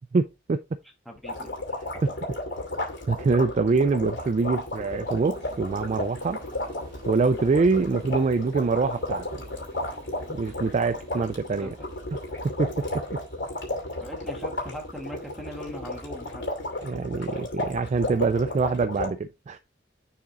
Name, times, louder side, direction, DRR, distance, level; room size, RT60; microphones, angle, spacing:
voice 1, 0.1-0.6 3.1-6.4 7.1-9.4 10.3-11.7 12.4-12.8 13.1-13.2 16.8-19.6, right 4 dB, 40° right, 0.3 m, -25 dB
voice 2, 1.0-1.5 11.6-11.9 14.0-16.4, equal, ahead, 1.4 m, -40 dB
sound 1, 1.2-19.1, left 2 dB, 75° left, 2.6 m, -33 dB
sound 2, 4.1-16.3, right 2 dB, 20° right, 2.6 m, -54 dB
6.9 x 3.6 x 3.9 m
head